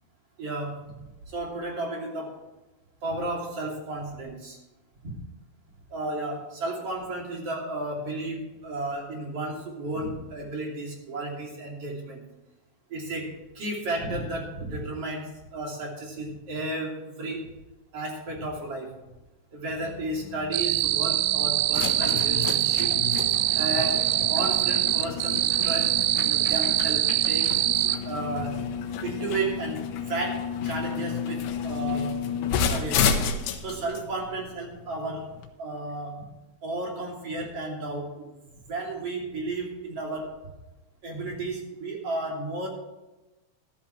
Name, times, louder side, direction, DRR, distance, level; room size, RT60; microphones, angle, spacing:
voice 1, 0.4-1.0 1.3-2.4 3.0-4.6 5.9-12.2 12.9-17.5 17.9-18.9 19.5-23.0 23.5-27.5 28.0-28.7 29.0-32.2 32.7-33.2 33.6-35.3 35.6-36.3 36.6-38.3 38.5-40.3 41.0-42.7, right 2 dB, 40° right, -1 dB, 3.5 m, -33 dB
sound 1, 19.8-35.5, left 7 dB, 75° left, 3.1 m, -31 dB
sound 2, 20.5-28.0, right 14 dB, 85° right, 2.8 m, -24 dB
13.5 x 13.0 x 3.2 m, 1.0 s
omnidirectional pair, 4.8 m